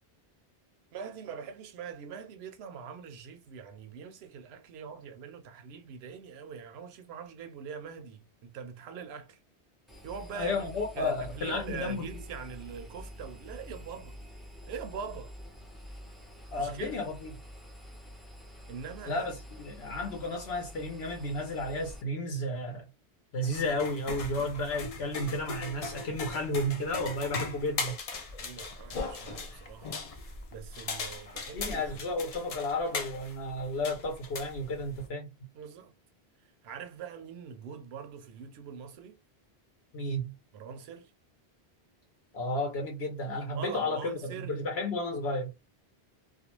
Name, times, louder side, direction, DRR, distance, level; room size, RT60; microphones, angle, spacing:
voice 1, 0.9-9.4 10.0-10.6 10.9-14.2 14.7-15.3 16.6-17.0 18.7-19.3 28.4-30.0 30.5-32.2 35.5-35.9 36.6-39.2 40.5-41.1 43.5-44.6, right 6 dB, 75° right, 0.8 m, -43 dB
Engine, 9.9-22.0, equal, ahead, 0.5 m, -47 dB
voice 2, 10.3-12.1 16.5-17.3 19.1-19.3 19.6-22.8 23.3-27.9 31.5-35.3 39.9-40.3 42.3-45.5, left 1 dB, 75° left, 0.9 m, -32 dB
sound 1, 23.4-35.1, left 4 dB, 55° left, 0.4 m, -39 dB
2.4 x 2.2 x 2.9 m
omnidirectional pair, 1.1 m